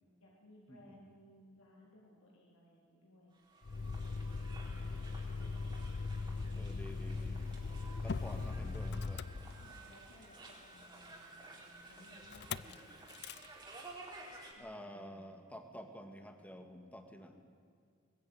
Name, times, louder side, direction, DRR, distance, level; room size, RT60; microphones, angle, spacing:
voice 1, 0.2-3.3 3.8-4.2 4.8-5.9 6.4-6.9 8.1-8.6 9.4-13.0 14.6-15.2, left 1 dB, 85° left, -3 dB, 3.9 m, -61 dB
sound 1, 3.3-14.5, right 2 dB, 20° right, 4.2 m, -54 dB
Motor vehicle (road), 3.6-10.1 12.3-12.7 13.1-13.5, left 4 dB, 50° left, 0.5 m, -40 dB
voice 2, 6.6-7.6 8.0-9.3 14.6-17.4, equal, 5° left, 5 dB, 2.2 m, -50 dB
21.5 x 21.0 x 9.6 m, 2.2 s
head